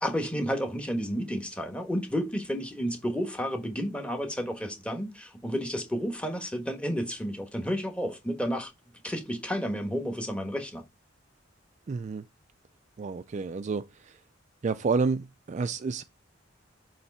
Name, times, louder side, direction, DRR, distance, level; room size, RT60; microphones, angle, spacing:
voice 1, 0.0-8.7 9.0-10.8, equal, 5° left, 1.2 m, -31 dB
voice 2, 11.9-12.2 13.0-13.9 14.6-16.0, right 4 dB, 35° right, 0.3 m, -29 dB
7.1 x 3.2 x 5.3 m
head